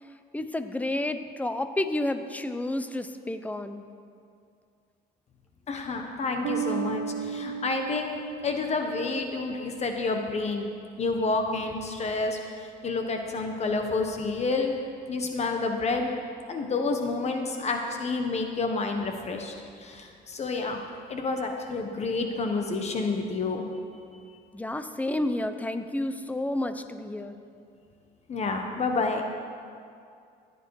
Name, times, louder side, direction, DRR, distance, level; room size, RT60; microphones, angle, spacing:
voice 1, 0.3-3.8 24.5-27.4, left 1 dB, 10° left, 9 dB, 0.7 m, -30 dB
voice 2, 5.7-10.7 11.0-14.7 15.1-16.1 16.5-19.5 19.8-20.8 21.1-23.6 28.3-29.2, left 3 dB, 40° left, 4 dB, 1.2 m, -29 dB
Bass guitar, 6.4-10.0, right 8 dB, 90° right, 0.8 m, -35 dB
16.0 x 10.0 x 4.8 m, 2.4 s
cardioid pair, 110°, 17 cm